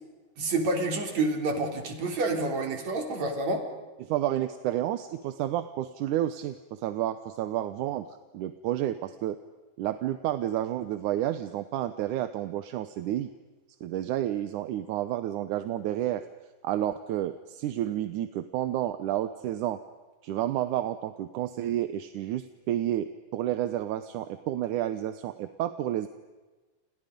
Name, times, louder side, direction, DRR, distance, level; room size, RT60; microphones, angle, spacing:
voice 1, 0.4-3.6, right 2 dB, 50° right, 4 dB, 4.8 m, -28 dB
voice 2, 4.0-8.1 8.3-9.4 9.8-13.3 13.8-16.2 16.6-19.8 20.2-26.1, right 12 dB, 70° right, 10 dB, 2.3 m, -30 dB
29.5 x 29.0 x 5.3 m, 1.2 s
omnidirectional pair, 4.0 m